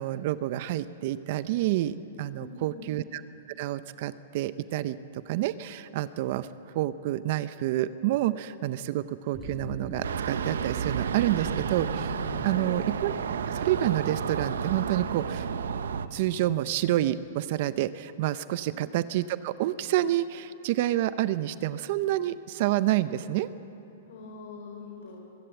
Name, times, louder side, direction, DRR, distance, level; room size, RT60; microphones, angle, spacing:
voice 1, 0.0-3.2 3.6-6.5 6.7-12.1 12.4-13.1 13.5-15.5 16.1-23.5, right 14 dB, 50° right, 15 dB, 0.6 m, -28 dB
voice 2, 2.3-2.9 12.4-12.8 18.6-18.8 24.0-25.2, left 4 dB, 75° left, -2 dB, 4.5 m, -43 dB
sound 1, 9.3-17.2, equal, ahead, 6.9 m, -43 dB
sound 2, 10.0-16.1, right 7 dB, 85° right, 0.9 m, -31 dB
22.5 x 16.5 x 8.1 m, 2.9 s
hypercardioid pair, 145°, 0 cm